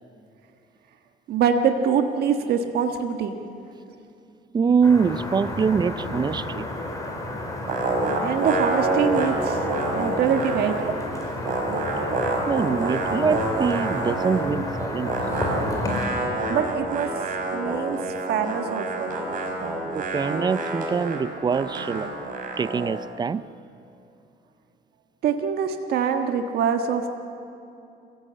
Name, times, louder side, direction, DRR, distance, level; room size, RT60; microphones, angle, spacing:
voice 1, 1.3-3.4 8.2-9.6 9.9-10.8 16.5-17.1 17.5-18.0 18.3-19.1 25.2-27.1, right 7 dB, 70° right, 5 dB, 1.5 m, -24 dB
voice 2, 4.5-6.7 10.9-11.0 12.5-15.1 19.9-22.1 22.6-23.5, right 6 dB, 25° right, 18 dB, 0.5 m, -24 dB
sound 1, 4.8-16.1, left 2 dB, 20° left, 4.5 m, -31 dB
sound 2, 7.7-11.0 11.2-14.5 15.0-23.0, right 2 dB, 55° right, 5.0 m, -28 dB
27.5 x 15.5 x 8.7 m, 2.6 s
cardioid pair, 110°, 17 cm